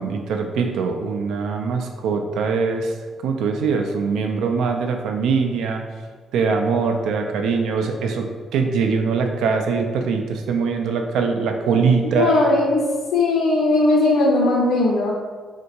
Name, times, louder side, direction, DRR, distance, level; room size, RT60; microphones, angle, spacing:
voice 1, 0.0-2.9 3.2-5.8 6.3-12.3, right 5 dB, 85° right, 4 dB, 0.4 m, -22 dB
voice 2, 12.2-12.8 13.1-15.1, left 2 dB, 85° left, -3 dB, 0.8 m, -18 dB
3.4 x 2.8 x 2.7 m, 1.4 s
cardioid pair, 90°, 0 cm